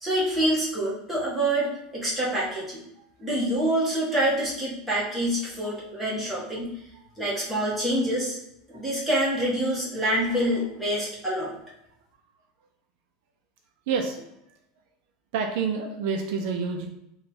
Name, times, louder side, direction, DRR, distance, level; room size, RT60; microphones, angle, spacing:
voice 1, 0.0-2.8 3.2-6.7 7.2-8.4 8.7-11.5, right 1 dB, 5° right, -8 dB, 1.2 m, -26 dB
voice 2, 13.9-14.2 15.3-16.9, right 5 dB, 65° right, 3 dB, 0.4 m, -28 dB
3.2 x 2.3 x 4.1 m, 0.83 s
supercardioid pair, 150°, 0 cm